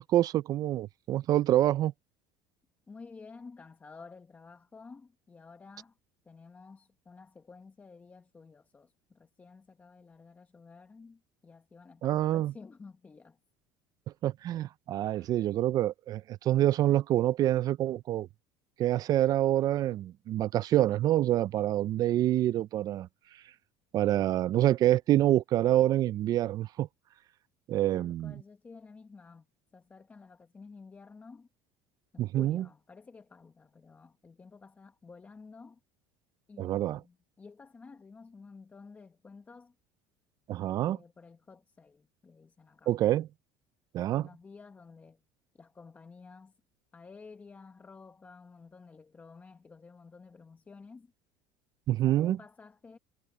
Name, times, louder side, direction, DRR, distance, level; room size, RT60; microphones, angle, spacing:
voice 1, 0.0-1.9 12.0-12.5 14.2-18.3 18.8-23.4 23.9-26.9 27.7-28.3 32.2-32.6 36.6-37.0 40.5-41.0 42.9-43.3 43.9-44.3 51.9-52.4, right 13 dB, 40° right, 0.4 m, -27 dB
voice 2, 2.9-6.0 6.2-13.4 15.0-15.4 27.9-29.5 29.7-31.5 32.1-35.8 36.5-39.7 40.8-42.9 44.1-45.2 45.5-46.5 46.9-51.1 52.0-53.0, left 4 dB, 20° left, 1.1 m, -52 dB
cardioid pair, 135°, 9 cm